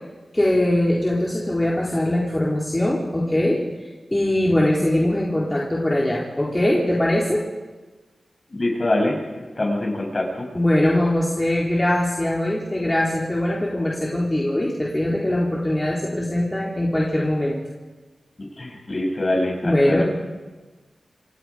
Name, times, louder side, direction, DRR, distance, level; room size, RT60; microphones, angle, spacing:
voice 1, 0.3-3.6 4.1-7.5 10.5-17.6 19.6-20.0, left 1 dB, 20° left, -4 dB, 4.0 m, -21 dB
voice 2, 8.5-10.5 18.6-20.0, left 1 dB, 40° left, 1 dB, 7.5 m, -24 dB
28.5 x 26.5 x 5.1 m, 1.2 s
wide cardioid pair, 80°, 0 cm